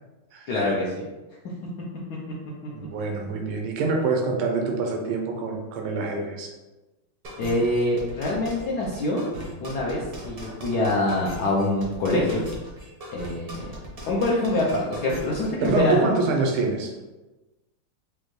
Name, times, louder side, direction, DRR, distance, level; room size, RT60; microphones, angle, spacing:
voice 1, 0.5-1.1 7.4-9.2 9.6-12.4 13.1-13.7 14.1-16.1, left 1 dB, 75° left, -5 dB, 0.9 m, -25 dB
voice 2, 2.7-6.5 15.6-16.9, right 3 dB, 85° right, 2 dB, 1.5 m, -25 dB
sound 1, 7.2-15.8, right 1 dB, 60° right, 0.6 m, -38 dB
5.2 x 2.1 x 3.1 m, 1.1 s
omnidirectional pair, 2.4 m